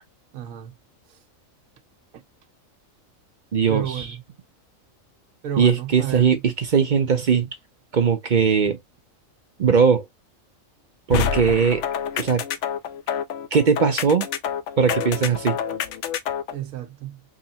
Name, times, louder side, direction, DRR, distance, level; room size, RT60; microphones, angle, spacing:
voice 1, 0.3-0.7 2.1-2.2 3.7-4.2 5.4-6.4 16.5-17.2, right 11 dB, 85° right, 1.1 m, -31 dB
voice 2, 3.5-4.1 5.6-7.5 7.9-8.8 9.6-10.1 11.1-11.8 12.1-12.4 13.5-14.3 14.8-15.6, right 6 dB, 50° right, 0.6 m, -19 dB
sound 1, 11.1-16.6, left 8 dB, 65° left, 0.9 m, -27 dB
3.7 x 3.2 x 2.7 m
omnidirectional pair, 1.4 m